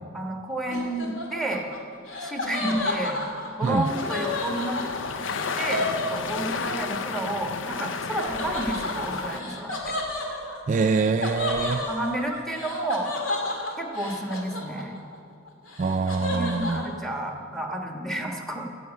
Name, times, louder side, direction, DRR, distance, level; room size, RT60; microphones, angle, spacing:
voice 1, 0.1-1.7 2.2-3.2 3.6-4.8 5.5-9.9 11.9-13.1 13.8-15.0 16.2-18.7, right 1 dB, ahead, 1 dB, 1.4 m, -31 dB
Laughter, 0.7-6.8 8.2-15.2 15.5-16.9, left 2 dB, 90° left, 2.2 m, -32 dB
sound 1, 3.8-9.4, left 5 dB, 65° left, 0.6 m, -32 dB
voice 2, 10.7-11.9 15.8-16.8, right 4 dB, 40° right, 7 dB, 0.3 m, -24 dB
15.0 x 7.2 x 8.3 m, 2.5 s
head